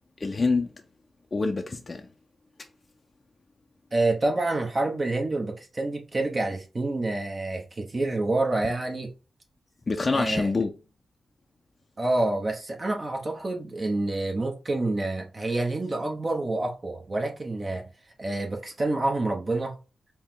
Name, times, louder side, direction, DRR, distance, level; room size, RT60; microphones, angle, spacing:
voice 1, 0.2-0.7 1.3-2.1 9.9-10.7, left 3 dB, 40° left, 0.5 m, -26 dB
voice 2, 3.9-9.1 10.1-10.5 12.0-17.9 18.2-19.8, right 2 dB, 40° right, 1.0 m, -27 dB
4.4 x 2.2 x 3.6 m
cardioid pair, 60°, 0 cm